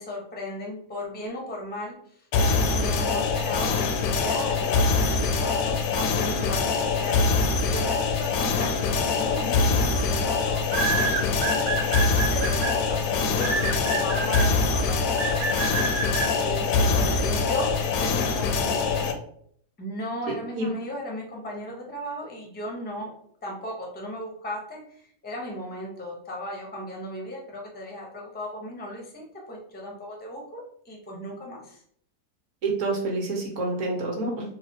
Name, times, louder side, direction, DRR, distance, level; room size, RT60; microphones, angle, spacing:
voice 1, 0.0-7.2 7.7-11.9 12.3-15.5 16.4-19.1 19.8-23.1 23.4-31.8, left 1 dB, 15° left, -1 dB, 0.3 m, -36 dB
sound 1, 2.3-19.1, left 4 dB, 70° left, 0.9 m, -24 dB
sound 2, 9.2-9.5 10.7-12.7 13.4-14.4 15.2-16.3, right 4 dB, 80° right, 1.3 m, -27 dB
voice 2, 20.3-20.7 32.6-34.4, right 2 dB, 55° right, 0 dB, 1.2 m, -28 dB
4.0 x 2.4 x 2.8 m, 0.64 s
omnidirectional pair, 1.7 m